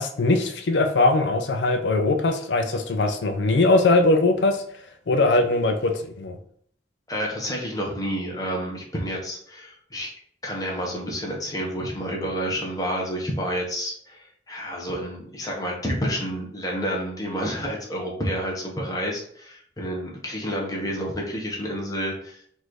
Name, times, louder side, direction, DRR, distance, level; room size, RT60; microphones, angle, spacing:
voice 1, 0.0-4.6 5.1-6.4, left 2 dB, 90° left, 6 dB, 0.5 m, -21 dB
voice 2, 7.1-10.1 10.4-22.4, equal, 20° left, -2 dB, 1.1 m, -29 dB
4.1 x 2.6 x 4.6 m, 0.62 s
head